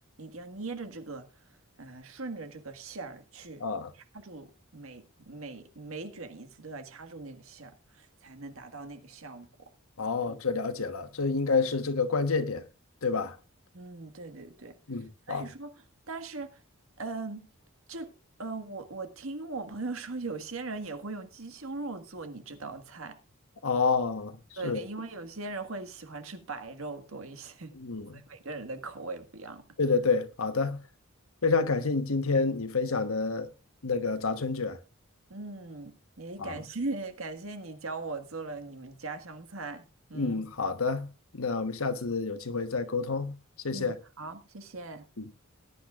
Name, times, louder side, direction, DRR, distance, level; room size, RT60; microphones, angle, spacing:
voice 1, 0.2-3.6 3.9-9.7 10.3-10.4 13.7-16.6 17.0-17.5 17.9-18.1 18.4-23.2 24.6-27.8 28.1-29.6 35.3-40.5 43.7-45.1, right 3 dB, 80° right, 1.7 m, -40 dB
voice 2, 10.0-12.6 13.0-13.4 14.9-15.4 23.6-24.3 24.6-24.8 27.8-28.2 29.8-30.8 31.4-33.5 33.8-34.8 36.4-36.5 40.1-41.1 41.3-43.3 43.6-44.0 45.2-45.3, left 4 dB, 85° left, 1.2 m, -28 dB
20.0 x 10.5 x 2.5 m
head